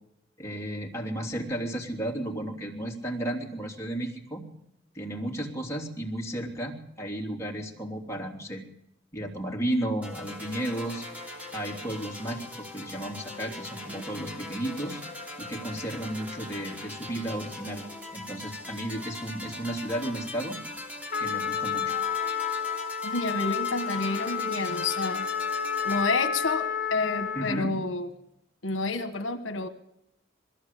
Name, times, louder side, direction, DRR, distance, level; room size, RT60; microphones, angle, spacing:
voice 1, 0.4-4.4 4.9-8.6 9.1-11.0 11.5-15.0 15.4-17.8 18.1-20.6 21.2-22.0 27.3-27.7, right 1 dB, 15° left, -1 dB, 3.2 m, -33 dB
sound 1, 10.0-26.0, left 2 dB, 10° right, 2.9 m, -41 dB
Trumpet, 21.1-27.7, left 7 dB, 45° left, 2.4 m, -30 dB
voice 2, 23.0-25.3 25.8-28.1 28.6-29.7, left 3 dB, 75° left, 8 dB, 1.4 m, -29 dB
21.5 x 15.0 x 8.3 m, 0.81 s
head